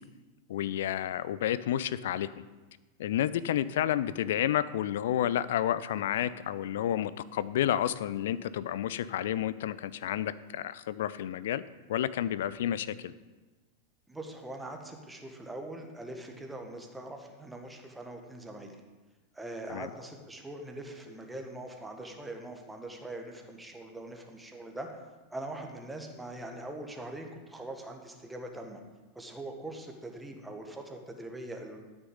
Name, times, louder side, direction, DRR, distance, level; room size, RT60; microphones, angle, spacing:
voice 1, 0.5-2.4 3.0-11.6 11.9-13.1 19.7-19.9, left 11 dB, 55° left, 17 dB, 0.4 m, -30 dB
voice 2, 14.1-18.8 19.3-25.0 25.3-28.8 29.1-31.8, right 1 dB, 5° right, 3 dB, 1.5 m, -42 dB
12.5 x 6.2 x 5.4 m, 1.2 s
figure-of-eight pair, 90°, 0 cm